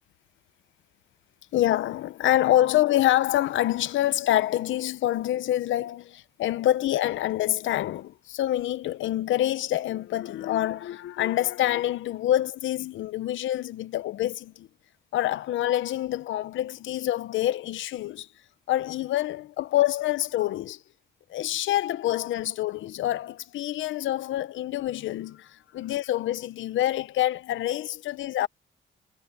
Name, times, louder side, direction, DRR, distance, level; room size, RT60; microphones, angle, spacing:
voice 1, 1.5-14.7 15.1-18.3 18.7-20.8 21.3-28.5, left 13 dB, 75° left, 0.9 m, -26 dB
cardioid pair, 90°, 20 cm